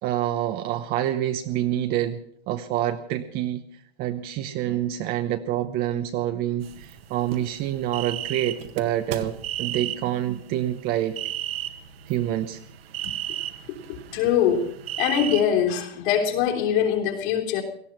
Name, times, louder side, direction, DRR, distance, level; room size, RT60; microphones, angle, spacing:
voice 1, 0.0-3.7 4.0-9.3 9.6-11.2 12.1-12.6, right 12 dB, 30° right, 7 dB, 0.9 m, -27 dB
sound 1, 6.6-15.4, right 11 dB, 70° right, 1.8 m, -34 dB
voice 2, 14.1-14.7 15.0-17.6, left 9 dB, 50° left, 1 dB, 3.5 m, -22 dB
18.0 x 14.0 x 5.9 m, 0.67 s
hypercardioid pair, 145°, 31 cm